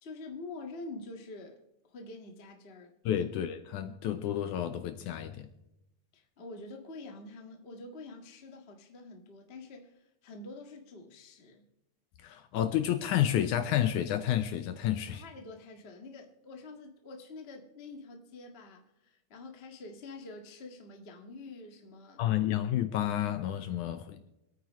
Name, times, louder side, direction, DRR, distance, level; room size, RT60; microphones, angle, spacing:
voice 1, 0.0-1.6 1.9-3.2 6.1-11.6 15.1-22.4, left 2 dB, 50° left, 0.7 m, -47 dB
voice 2, 3.1-5.5 12.2-15.2 22.2-24.2, left 11 dB, 75° left, 1.9 m, -30 dB
26.5 x 9.2 x 3.1 m
omnidirectional pair, 4.1 m